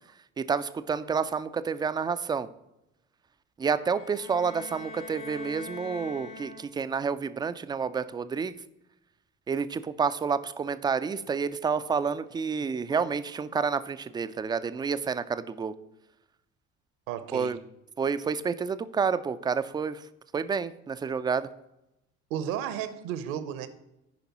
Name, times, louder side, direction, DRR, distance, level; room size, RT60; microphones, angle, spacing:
voice 1, 0.4-2.5 3.6-8.5 9.5-15.7 17.3-17.6 18.0-20.0 20.3-21.5, right 5 dB, 10° right, 13 dB, 0.3 m, -29 dB
sound 1, 3.8-7.0, left 2 dB, 65° left, 2.0 m, -43 dB
voice 2, 17.1-17.6 22.3-23.7, right 10 dB, 60° right, 12 dB, 0.9 m, -33 dB
14.0 x 5.1 x 3.0 m, 0.86 s
figure-of-eight pair, 55°, 39 cm